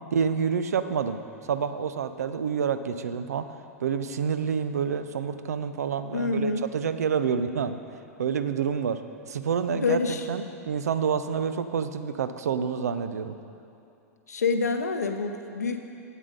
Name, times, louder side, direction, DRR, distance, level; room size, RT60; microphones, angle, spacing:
voice 1, 0.1-1.2 1.5-3.5 3.8-7.8 8.2-9.0 9.3-13.3, right 7 dB, 75° right, 11 dB, 0.5 m, -28 dB
voice 2, 6.1-6.6 9.7-10.3 14.3-15.8, left 4 dB, 85° left, 6 dB, 0.7 m, -27 dB
8.2 x 7.4 x 5.1 m, 2.7 s
hypercardioid pair, 100°, 9 cm